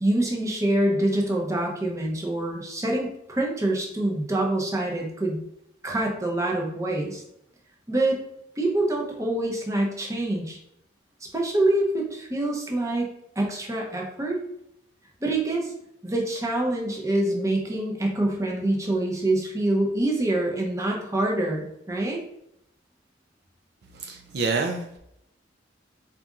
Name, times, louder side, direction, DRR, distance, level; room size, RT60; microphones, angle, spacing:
voice 1, 0.0-5.4 5.8-7.2 7.9-8.2 8.6-10.6 11.2-13.1 13.4-14.4 15.2-15.7 16.0-22.2, right 1 dB, 15° right, -1 dB, 0.7 m, -25 dB
voice 2, 24.0-25.0, right 4 dB, 55° right, 4 dB, 0.4 m, -27 dB
4.1 x 2.5 x 3.6 m, 0.77 s
head